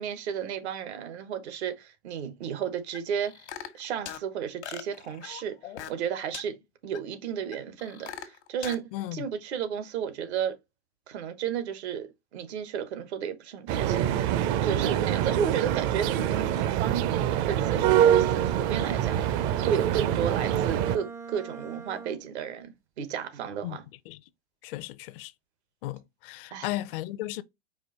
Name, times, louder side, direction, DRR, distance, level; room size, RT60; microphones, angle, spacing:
voice 1, 0.0-3.3 3.7-5.6 5.9-6.6 6.8-10.6 11.1-17.1 17.4-19.3 19.6-23.8 26.5-26.7, right 8 dB, 70° right, 1.3 m, -33 dB
sound 1, 2.9-4.2 4.6-6.1 6.3-6.4 6.9-7.0 7.5-8.8, left 10 dB, 80° left, 1.1 m, -40 dB
voice 2, 8.9-9.2 23.6-23.8 24.1-24.2 24.6-25.3 25.8-27.4, left 16 dB, 55° left, 0.6 m, -35 dB
sound 2, 13.7-21.0, right 10 dB, 45° right, 0.7 m, -25 dB
Bowed string instrument, 18.3-22.4, right 5 dB, 10° right, 0.4 m, -44 dB
5.0 x 2.5 x 4.0 m
hypercardioid pair, 110°, 34 cm